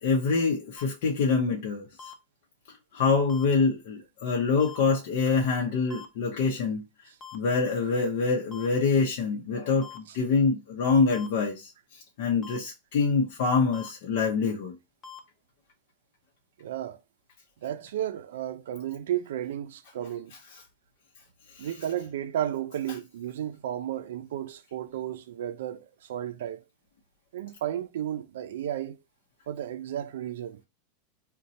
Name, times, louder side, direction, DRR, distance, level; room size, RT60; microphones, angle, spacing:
voice 1, 0.0-2.1 2.9-6.8 7.3-11.7 12.2-14.8 21.6-21.7, left 4 dB, 65° left, 0.7 m, -25 dB
sound 1, 0.8-0.9 2.0-2.1 3.3-3.4 4.6-4.8 5.9-6.0 7.2-7.4 8.5-8.7 9.8-10.0 11.1-11.3 12.4-12.6 13.7-13.9 15.0-15.2, left 6 dB, 25° left, 0.5 m, -43 dB
voice 2, 16.6-17.0 17.6-20.3 21.6-26.6 27.3-29.0 29.5-30.6, right 11 dB, 90° right, 0.4 m, -33 dB
2.7 x 2.2 x 4.0 m
supercardioid pair, 150°, 0 cm